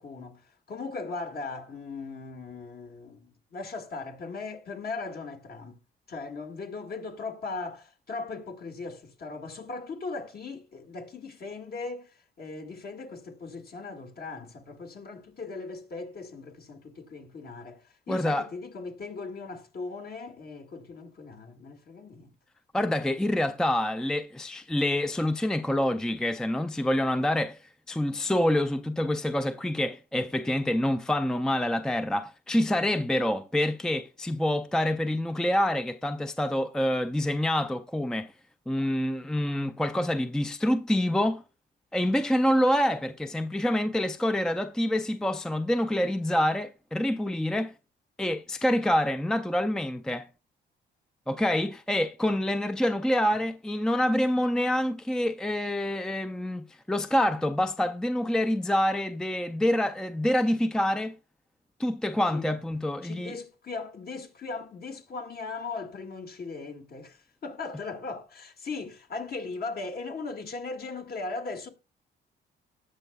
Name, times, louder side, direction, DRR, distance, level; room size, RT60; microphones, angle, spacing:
voice 1, 0.0-5.8 6.1-17.8 18.1-22.3 62.3-62.6 63.0-71.7, left 3 dB, 50° left, 2.0 m, -38 dB
voice 2, 18.1-18.4 22.7-27.6 27.9-38.3 38.7-41.4 41.9-47.7 48.2-50.3 51.3-61.2 61.8-63.4, left 1 dB, 5° left, 0.5 m, -26 dB
18.5 x 6.6 x 2.3 m
cardioid pair, 90°, 20 cm